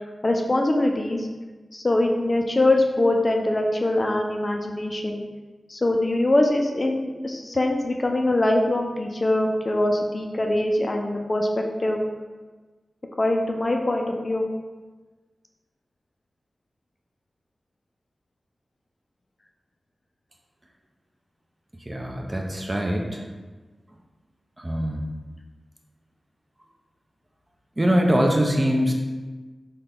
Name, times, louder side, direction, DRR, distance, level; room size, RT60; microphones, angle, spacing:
voice 1, 0.2-1.3 1.7-5.3 5.7-12.0 13.2-14.4, left 1 dB, 40° left, 2 dB, 0.4 m, -23 dB
voice 2, 21.9-23.2 24.6-25.0 27.8-28.9, equal, 25° right, 1 dB, 0.5 m, -23 dB
3.8 x 2.2 x 3.6 m, 1.3 s
cardioid pair, 50°, 0 cm